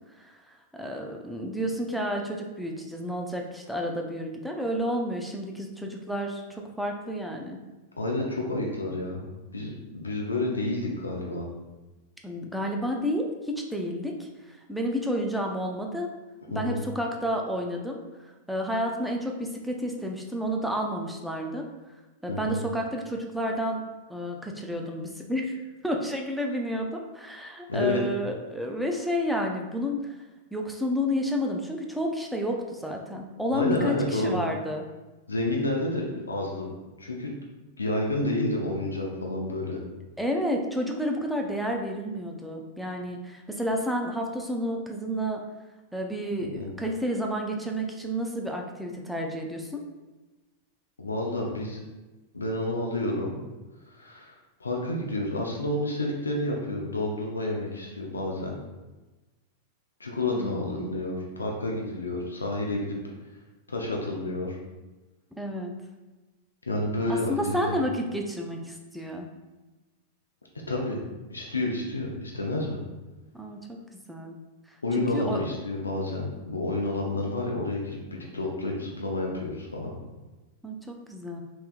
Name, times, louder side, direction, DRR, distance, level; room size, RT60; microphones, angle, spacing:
voice 1, 0.2-7.6 12.2-16.1 16.5-18.0 18.5-21.7 22.2-23.8 24.1-25.6 25.8-30.1 30.5-34.8 40.2-45.4 45.9-49.8 60.2-60.9 65.4-65.7 67.1-69.3 73.3-73.8 74.1-74.4 75.0-75.5 80.6-81.4, equal, ahead, 1 dB, 0.5 m, -30 dB
voice 2, 8.0-9.2 9.5-11.5 16.5-16.8 22.3-22.6 27.7-28.0 33.5-34.4 35.3-36.7 37.0-37.3 37.8-39.8 46.4-46.7 51.0-51.8 52.3-53.4 53.9-58.5 60.0-63.0 63.7-64.6 66.6-67.8 70.7-71.0 71.3-72.8 74.8-79.9, left 2 dB, 90° left, -1 dB, 0.5 m, -30 dB
3.3 x 3.0 x 2.4 m, 1.1 s
hypercardioid pair, 95°, 0 cm